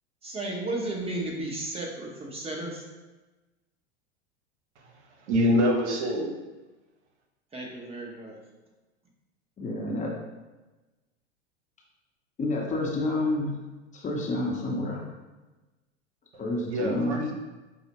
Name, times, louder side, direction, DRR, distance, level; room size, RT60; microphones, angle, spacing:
voice 1, 0.2-2.8 7.5-8.4, right 2 dB, 15° right, -1 dB, 0.9 m, -34 dB
voice 2, 5.3-6.3 16.7-17.3, equal, 80° right, 2 dB, 0.8 m, -24 dB
voice 3, 9.6-10.1 12.4-13.5 13.9-15.0 16.4-17.2, left 1 dB, 20° left, -2 dB, 0.8 m, -29 dB
5.6 x 2.1 x 2.9 m, 1.2 s
hypercardioid pair, 100°, 34 cm